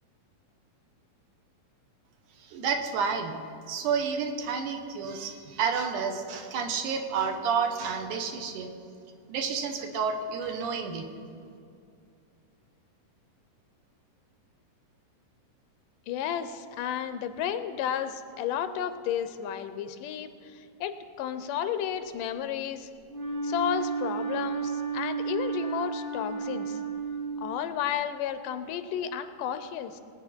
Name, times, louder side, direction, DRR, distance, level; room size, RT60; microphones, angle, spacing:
voice 1, 2.4-3.4 3.7-8.7 9.3-11.1, right 6 dB, 75° right, 5 dB, 2.5 m, -30 dB
voice 2, 16.1-22.9 23.4-26.8 27.4-30.0, left 9 dB, 90° left, 10 dB, 2.3 m, -32 dB
Wind instrument woodwind instrument, 23.1-27.8, right 5 dB, 45° right, 1.9 m, -32 dB
21.0 x 9.2 x 4.3 m, 2.4 s
omnidirectional pair, 3.8 m